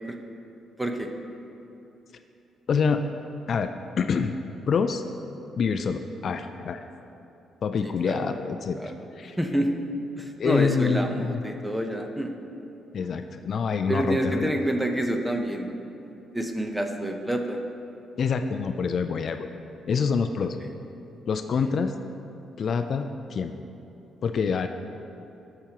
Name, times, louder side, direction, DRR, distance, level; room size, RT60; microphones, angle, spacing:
voice 1, 0.8-1.1 7.8-8.3 8.8-8.9 9.4-9.7 10.2-12.3 13.9-15.7 16.3-17.6 21.6-21.7, right 1 dB, 5° right, 4 dB, 0.8 m, -28 dB
voice 2, 2.7-3.0 3.5-3.7 4.0-4.3 4.7-5.0 5.6-6.8 7.6-8.8 9.2-9.4 10.4-11.4 12.9-14.5 18.2-19.5 19.9-20.6 21.3-21.9 22.6-23.5 24.2-24.7, left 5 dB, 55° left, 7 dB, 0.3 m, -26 dB
14.0 x 5.9 x 2.9 m, 2.9 s
cardioid pair, 90°, 0 cm